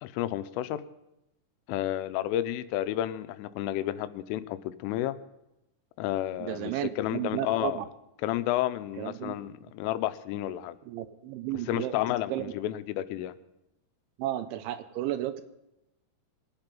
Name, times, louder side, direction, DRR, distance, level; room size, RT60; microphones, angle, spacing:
voice 1, 0.0-0.8 1.7-5.2 6.0-7.8 8.2-10.8 11.7-13.4, left 13 dB, 90° left, 13 dB, 3.2 m, -31 dB
voice 2, 6.4-7.9 9.0-9.3 10.8-11.9 12.3-12.5 14.2-15.4, right 13 dB, 80° right, 10 dB, 3.0 m, -33 dB
23.0 x 9.0 x 5.3 m, 0.90 s
omnidirectional pair, 5.6 m